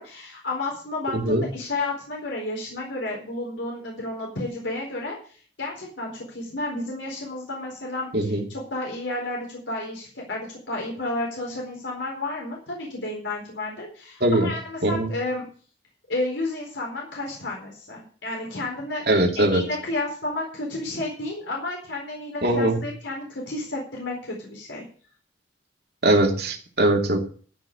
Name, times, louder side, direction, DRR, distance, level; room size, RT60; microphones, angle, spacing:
voice 1, 0.0-15.5 16.1-19.0 19.3-24.8, left 2 dB, 85° left, -2 dB, 4.3 m, -31 dB
voice 2, 1.1-1.5 8.1-8.4 14.2-14.5 14.8-15.1 19.1-19.6 22.4-22.8 26.0-27.2, right 1 dB, 60° right, 2 dB, 2.4 m, -21 dB
13.5 x 5.9 x 8.6 m, 0.44 s
head